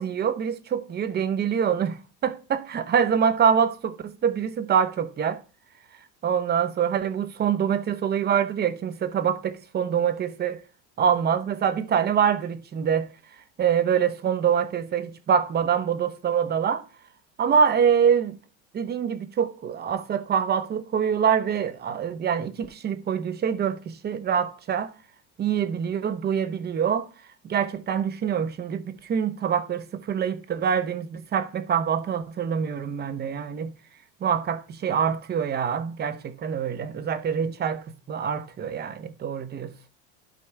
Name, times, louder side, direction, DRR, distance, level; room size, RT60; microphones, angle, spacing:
voice 1, 0.0-5.4 6.2-10.6 11.0-13.1 13.6-16.8 17.4-18.4 18.7-24.9 25.4-27.1 27.4-33.7 34.2-39.7, right 7 dB, 30° right, 0.8 m, -25 dB
12.0 x 4.2 x 3.5 m
supercardioid pair, 115°, 36 cm